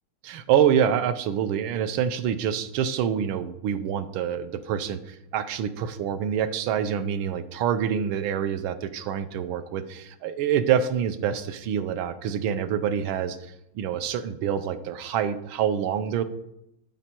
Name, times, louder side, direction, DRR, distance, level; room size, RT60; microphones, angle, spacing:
voice 1, 0.2-13.4 13.7-16.2, right 8 dB, 75° right, 11 dB, 1.4 m, -26 dB
12.5 x 5.1 x 4.3 m, 0.82 s
omnidirectional pair, 2.4 m